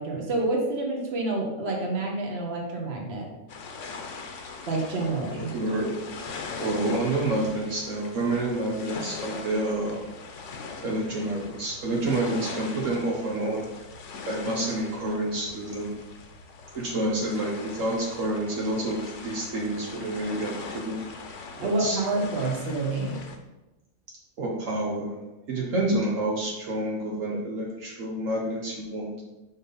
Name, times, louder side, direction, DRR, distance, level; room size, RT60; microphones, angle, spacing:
voice 1, 0.0-3.3 4.7-5.5 21.6-23.2, right 2 dB, 50° right, 0 dB, 1.5 m, -28 dB
sound 1, 3.5-23.4, left 4 dB, 65° left, 1.1 m, -41 dB
voice 2, 5.5-6.0 6.6-10.0 10.8-13.7 14.3-15.9 16.7-21.0 21.6-22.0 24.4-25.2 25.5-29.2, right 1 dB, 70° right, -2 dB, 1.4 m, -28 dB
6.1 x 5.3 x 3.9 m, 1.0 s
omnidirectional pair, 1.4 m